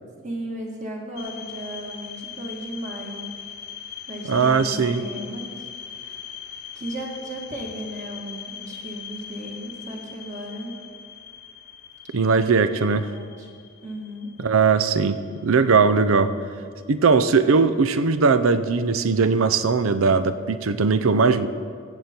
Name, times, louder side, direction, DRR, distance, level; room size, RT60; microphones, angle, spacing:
voice 1, 0.2-3.3 4.1-5.7 5.9-6.2 6.7-10.8 12.2-12.5 12.9-13.5 13.8-14.3, right 1 dB, 35° right, -1 dB, 1.7 m, -35 dB
sound 1, 1.2-16.1, left 8 dB, 50° left, 0.9 m, -40 dB
voice 2, 4.3-5.0 12.1-13.1 14.4-16.3 16.9-21.5, right 5 dB, 85° right, 12 dB, 0.6 m, -19 dB
16.0 x 8.1 x 4.4 m, 2.1 s
head